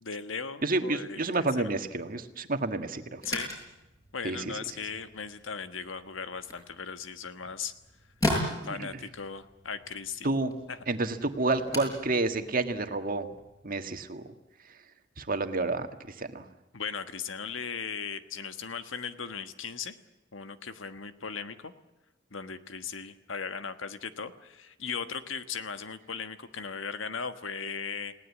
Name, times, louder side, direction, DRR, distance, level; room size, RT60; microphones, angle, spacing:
voice 1, 0.0-1.2 1.6-1.7 3.2-3.5 4.1-7.7 8.6-10.3 10.7-10.8 16.7-20.0 20.3-21.7 22.3-28.1, left 6 dB, 80° left, 10 dB, 1.4 m, -37 dB
voice 2, 0.6-3.2 4.2-4.4 8.8-8.9 10.2-10.6 10.9-13.3 13.6-14.3 15.2-16.5, right 2 dB, 45° right, 7 dB, 1.7 m, -29 dB
sound 1, 3.1-13.6, left 1 dB, 20° left, 7.3 m, -38 dB
29.5 x 18.0 x 8.5 m, 1.0 s
head